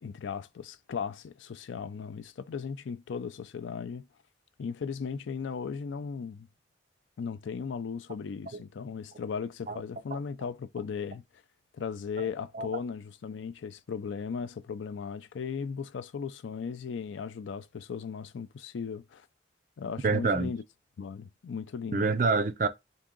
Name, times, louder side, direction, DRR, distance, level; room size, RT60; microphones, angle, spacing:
voice 1, 0.0-4.1 4.6-6.5 7.2-11.2 11.7-19.3 19.8-20.6 21.0-22.1, left 6 dB, 85° left, 0.4 m, -37 dB
voice 2, 20.0-20.5 21.9-22.7, right 4 dB, 45° right, 0.5 m, -27 dB
3.6 x 2.8 x 3.7 m
head